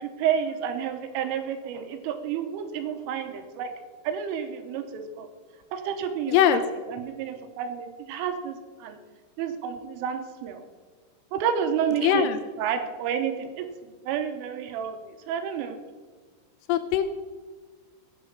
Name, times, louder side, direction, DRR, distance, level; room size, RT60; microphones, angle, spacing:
voice 1, 0.0-3.7 4.0-5.3 5.7-6.6 6.9-9.0 9.4-10.6 11.3-12.3 12.6-13.7 14.0-15.8, right 8 dB, 80° right, 7 dB, 3.4 m, -30 dB
voice 2, 6.3-6.6 12.0-12.4 16.7-17.0, left 10 dB, 85° left, 10 dB, 2.9 m, -21 dB
17.5 x 6.2 x 6.6 m, 1.4 s
omnidirectional pair, 5.9 m